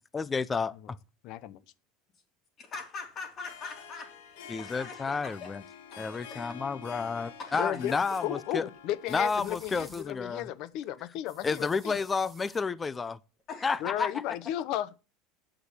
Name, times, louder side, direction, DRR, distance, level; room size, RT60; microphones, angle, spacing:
voice 1, 0.1-1.0 4.5-5.6 6.0-8.2 8.5-8.6 9.1-10.4 11.4-13.2 13.6-14.1, left 4 dB, 20° left, 0.5 m, -31 dB
voice 2, 1.2-1.6 7.6-12.0 13.8-14.9, left 12 dB, 55° left, 0.8 m, -34 dB
voice 3, 2.6-5.5 5.9-6.6 7.4-7.7 13.5-14.1, left 4 dB, 35° left, 3.6 m, -42 dB
Harp, 3.3-10.6, left 7 dB, 90° left, 1.8 m, -49 dB
sound 1, 7.8-8.3 9.1-10.2 11.3-12.7, right 3 dB, 10° right, 1.7 m, -53 dB
8.2 x 6.2 x 8.1 m
supercardioid pair, 130°, 0 cm